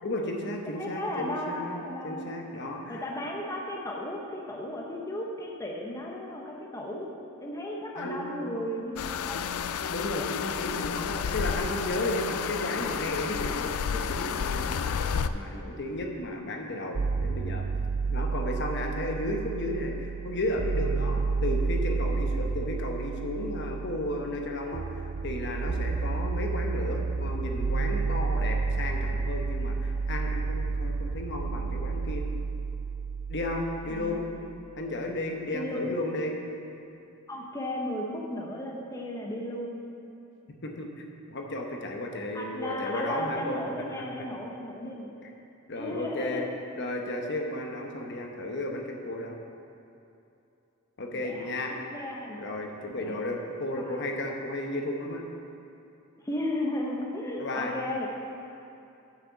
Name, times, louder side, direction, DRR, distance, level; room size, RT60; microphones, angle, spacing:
voice 1, 0.0-3.0 7.9-8.7 9.9-17.7 18.1-32.2 33.3-34.2 34.7-36.4 40.6-40.9 41.3-44.0 45.2-45.3 45.7-46.4 46.8-49.4 51.0-51.7 52.4-55.2 57.4-57.7, left 1 dB, 55° left, 2 dB, 1.0 m, -34 dB
voice 2, 0.7-2.3 2.9-7.1 7.4-9.7 33.8-34.3 35.5-35.9 37.3-39.8 42.3-45.1 45.8-46.5 51.1-52.4 52.9-53.2 53.7-54.0 56.2-58.1, left 1 dB, 15° left, -1 dB, 0.9 m, -35 dB
sound 1, 9.0-15.3, left 7 dB, 75° left, 0.4 m, -31 dB
sound 2, 16.9-34.9, right 4 dB, 35° right, 0.3 m, -31 dB
8.5 x 6.6 x 7.2 m, 2.7 s
head